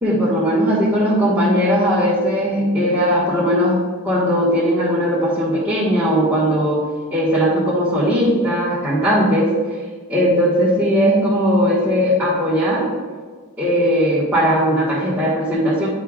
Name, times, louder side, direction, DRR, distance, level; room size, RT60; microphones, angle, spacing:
voice 1, 0.0-3.8 4.0-6.8 7.1-9.8 10.1-12.9 13.6-15.9, equal, 10° right, -11 dB, 1.5 m, -18 dB
10.0 x 5.0 x 2.4 m, 1.5 s
head